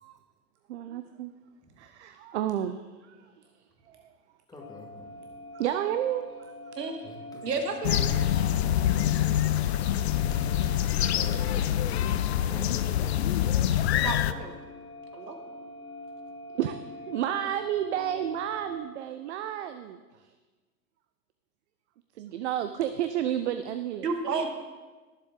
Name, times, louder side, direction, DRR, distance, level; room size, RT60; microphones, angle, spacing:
voice 1, 0.7-1.3 1.8-2.8 3.1-3.2 3.9-4.0 5.5-6.5 16.6-20.0 22.2-24.1, right 11 dB, 45° right, 9 dB, 0.6 m, -31 dB
voice 2, 4.5-5.2 7.0-7.4 11.3-11.4 11.9-12.8, left 1 dB, 10° left, -1 dB, 2.0 m, -49 dB
sound 1, 4.6-18.8, left 1 dB, 60° left, 1.6 m, -44 dB
voice 3, 7.4-8.1 14.0-14.5 15.1-15.4 24.0-24.5, right 4 dB, 70° right, 6 dB, 1.8 m, -31 dB
sound 2, 7.8-14.3, left 11 dB, 45° left, 0.5 m, -25 dB
18.0 x 7.5 x 3.8 m, 1.3 s
hypercardioid pair, 115°, 49 cm